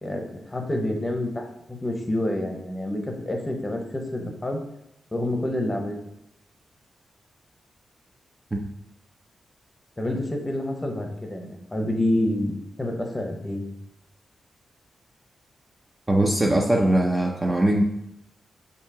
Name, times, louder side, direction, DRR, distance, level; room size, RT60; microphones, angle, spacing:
voice 1, 0.0-4.6 5.1-6.0 10.0-12.5 12.8-13.7, left 1 dB, 15° left, 3 dB, 0.8 m, -28 dB
voice 2, 16.1-17.8, right 1 dB, 15° right, 0 dB, 0.5 m, -21 dB
7.3 x 2.8 x 4.8 m, 0.82 s
wide cardioid pair, 145°, 0 cm